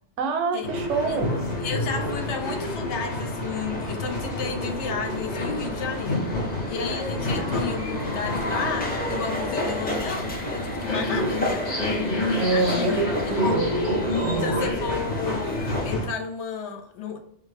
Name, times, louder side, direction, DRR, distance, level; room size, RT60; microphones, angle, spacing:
voice 1, 0.2-1.3 12.4-13.8 14.2-14.6, right 4 dB, 80° right, 6 dB, 0.9 m, -26 dB
sound 1, 0.6-16.1, left 1 dB, 45° left, 0.7 m, -29 dB
sound 2, 0.9-15.9, left 1 dB, 15° left, 0.4 m, -33 dB
voice 2, 1.6-6.2 6.7-11.6 12.5-13.0 13.4-13.5 14.4-15.6 15.8-17.2, left 6 dB, 75° left, 5 dB, 0.9 m, -32 dB
3.5 x 2.7 x 3.3 m, 0.68 s
omnidirectional pair, 1.2 m